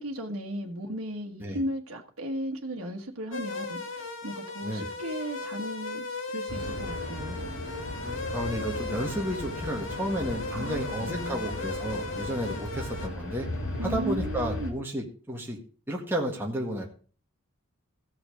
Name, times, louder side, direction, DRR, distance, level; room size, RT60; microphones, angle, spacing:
voice 1, 0.0-7.5 10.5-11.4 13.8-14.7, right 1 dB, 75° right, 1.4 m, -36 dB
sound 1, 3.3-13.1, left 3 dB, 60° left, 1.7 m, -37 dB
sound 2, 6.5-14.7, left 1 dB, 80° left, 2.9 m, -36 dB
voice 2, 8.0-13.5 13.8-15.6 15.9-16.8, equal, 10° right, 1.7 m, -32 dB
15.5 x 6.0 x 5.1 m
head